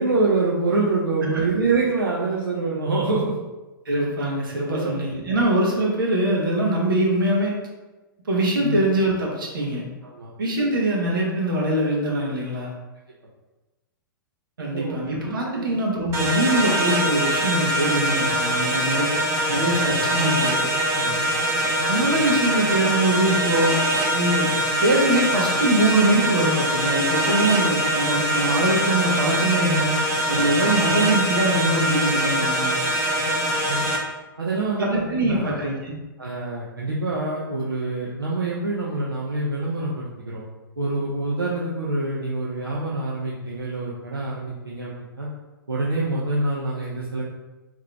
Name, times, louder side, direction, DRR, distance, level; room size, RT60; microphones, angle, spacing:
voice 1, 0.0-3.3 4.7-5.0 8.6-8.9 10.1-10.3 14.6-15.0 15.2-15.7 18.6-18.7 19.5-19.7 20.9-21.2 22.1-22.2 30.3-30.4 33.7-33.8 34.4-35.6 36.2-40.4 40.8-45.3 45.7-47.2, right 3 dB, 85° right, -6 dB, 0.7 m, -26 dB
voice 2, 3.8-7.5 8.3-9.9 10.4-12.7 14.6-19.1 19.5-20.5 21.9-23.8 24.1-24.5 24.8-30.0 30.3-32.8 34.8-36.0, right 1 dB, 70° right, -2 dB, 1.2 m, -23 dB
sound 1, 16.1-34.0, right 1 dB, 25° right, 0.8 m, -23 dB
3.8 x 3.1 x 3.4 m, 1.1 s
figure-of-eight pair, 110°, 12 cm